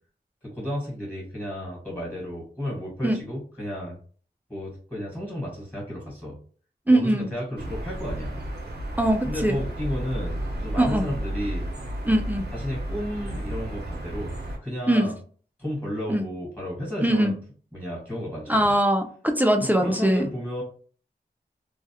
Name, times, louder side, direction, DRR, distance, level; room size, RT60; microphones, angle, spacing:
voice 1, 0.4-4.0 4.5-6.4 6.9-8.4 9.2-11.7 12.5-14.3 14.6-15.1 15.6-17.3 17.7-18.7 19.6-20.6, equal, 10° left, -4 dB, 1.2 m, -33 dB
voice 2, 6.9-7.3 9.0-9.6 10.8-11.1 12.1-12.4 14.9-15.1 16.1-16.2 17.0-17.3 18.5-20.3, right 1 dB, 10° right, 4 dB, 0.3 m, -21 dB
sound 1, 7.5-14.6, right 1 dB, 80° right, 0.6 m, -32 dB
2.3 x 2.0 x 2.7 m, 0.43 s
wide cardioid pair, 65°, 17 cm